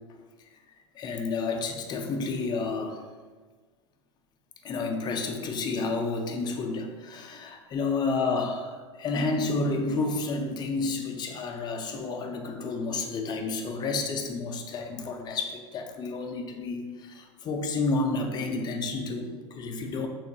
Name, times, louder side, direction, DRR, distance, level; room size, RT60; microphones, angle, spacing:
voice 1, 1.0-3.0 4.6-20.1, left 3 dB, 25° left, 4 dB, 0.4 m, -30 dB
3.5 x 2.3 x 2.7 m, 1.5 s
hypercardioid pair, 100°, 16 cm